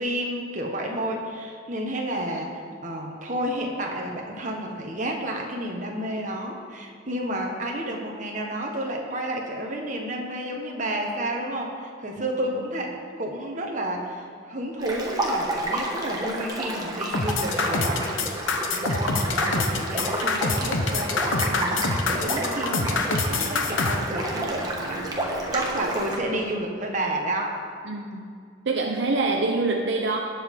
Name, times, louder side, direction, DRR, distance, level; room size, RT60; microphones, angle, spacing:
voice 1, 0.0-27.6 29.3-29.4, right 1 dB, 40° right, 0 dB, 1.4 m, -31 dB
sound 1, 14.8-26.2, right 1 dB, 20° right, 1.3 m, -30 dB
sound 2, 17.1-24.0, left 4 dB, 75° left, 1.0 m, -25 dB
sound 3, 20.6-26.4, right 1 dB, 55° left, 3.0 m, -41 dB
voice 2, 27.9-28.3 28.7-30.2, right 3 dB, 65° right, 2 dB, 0.7 m, -25 dB
18.5 x 7.1 x 3.8 m, 2.3 s
head